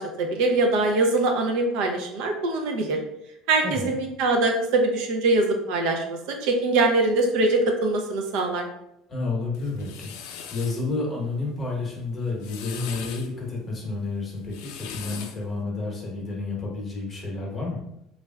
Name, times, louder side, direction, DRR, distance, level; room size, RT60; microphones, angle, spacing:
voice 1, 0.0-3.0 3.5-8.7, right 2 dB, 70° right, 3 dB, 0.5 m, -23 dB
voice 2, 3.6-4.0 9.1-10.1 10.5-17.8, left 3 dB, 20° left, -2 dB, 0.9 m, -30 dB
sound 1, 9.5-10.9 12.2-13.3 14.4-15.5, left 7 dB, 75° left, 0.3 m, -39 dB
3.1 x 2.4 x 2.2 m, 0.82 s
cardioid pair, 135°, 0 cm